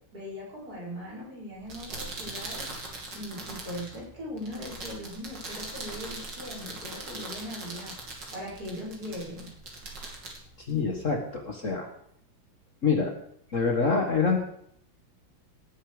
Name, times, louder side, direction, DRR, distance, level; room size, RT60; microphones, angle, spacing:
voice 1, 0.1-2.6 3.1-7.9 8.3-9.5, left 1 dB, 50° right, -6 dB, 6.2 m, -39 dB
sound 1, 1.5-11.4, right 2 dB, 65° right, 3.4 m, -41 dB
voice 2, 10.6-11.9 12.8-13.1 13.5-14.4, left 5 dB, 40° left, 2 dB, 1.8 m, -26 dB
18.0 x 10.0 x 5.0 m, 0.68 s
omnidirectional pair, 2.1 m